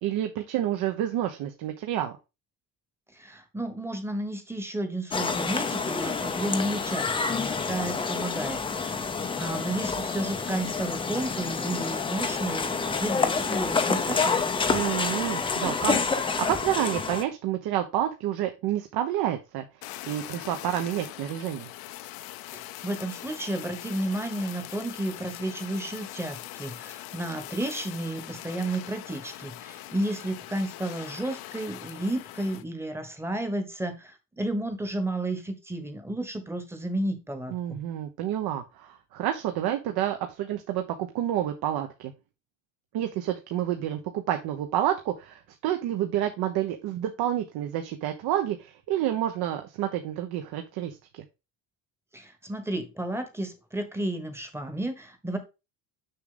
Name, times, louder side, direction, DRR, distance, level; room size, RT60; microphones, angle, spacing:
voice 1, 0.0-2.1 14.7-19.7 20.1-21.7 37.5-42.1 42.9-51.2, right 11 dB, 60° right, 6 dB, 1.0 m, -29 dB
voice 2, 3.1-14.4 22.5-37.8 52.1-55.4, right 1 dB, 5° right, 8 dB, 1.1 m, -32 dB
sound 1, 5.1-17.2, left 5 dB, 10° left, 0.6 m, -28 dB
Fire, 19.8-32.6, left 15 dB, 60° left, 0.7 m, -42 dB
6.8 x 6.2 x 3.8 m, 0.27 s
cardioid pair, 175°, 42 cm